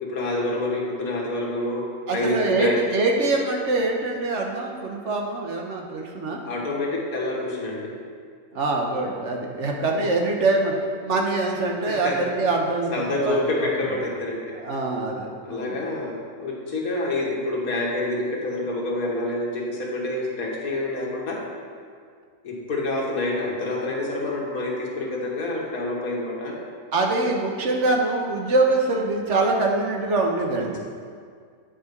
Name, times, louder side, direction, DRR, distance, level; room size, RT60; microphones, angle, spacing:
voice 1, 0.0-2.8 6.4-8.0 9.9-10.0 11.8-12.1 12.9-14.7 15.4-21.4 22.4-26.5, left 2 dB, 90° left, -2 dB, 1.8 m, -27 dB
voice 2, 2.1-6.4 8.5-10.7 11.0-13.7 14.5-15.8 26.9-30.8, right 2 dB, 60° right, 1 dB, 1.2 m, -24 dB
9.1 x 5.0 x 5.3 m, 2.1 s
omnidirectional pair, 1.5 m